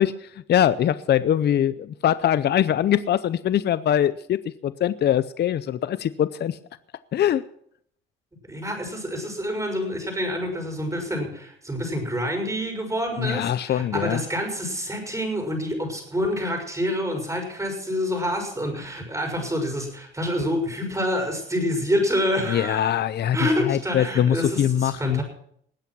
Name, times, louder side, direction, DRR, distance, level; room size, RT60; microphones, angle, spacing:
voice 1, 0.0-6.6 7.1-7.4 13.2-14.2 22.5-25.2, left 10 dB, 55° left, 15 dB, 0.6 m, -22 dB
voice 2, 8.5-22.9 23.3-25.2, equal, 15° right, 3 dB, 6.3 m, -27 dB
19.5 x 8.4 x 6.1 m, 0.67 s
cardioid pair, 90°, 20 cm